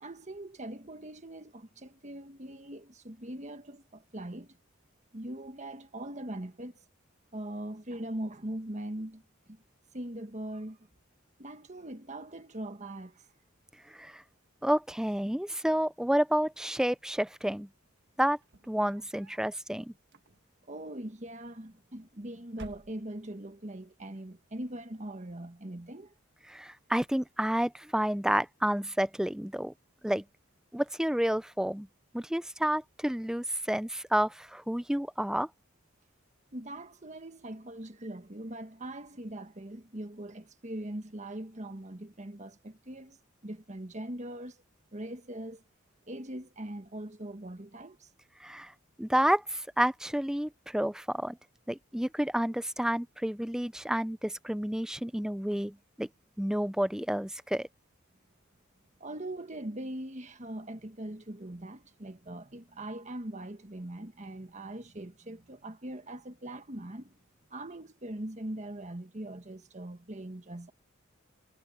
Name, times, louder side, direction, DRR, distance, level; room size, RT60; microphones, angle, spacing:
voice 1, 0.0-4.6 5.1-6.8 7.3-9.2 9.5-9.6 9.9-10.8 11.4-13.3 20.7-26.1 36.5-43.2 43.4-44.6 44.9-45.6 46.1-48.1 59.0-67.2 67.5-70.7, right 1 dB, 35° right, 1.5 m, -41 dB
voice 2, 14.6-17.7 18.2-18.4 18.7-19.9 26.5-29.7 30.0-30.2 30.7-31.9 32.1-35.5 48.4-48.7 49.0-51.4 51.7-56.1 56.4-57.7, equal, 5° right, 0.5 m, -30 dB
sound 1, 18.4-19.5 20.0-20.7 21.7-22.2 22.5-23.4, right 2 dB, 55° right, 1.5 m, -52 dB
head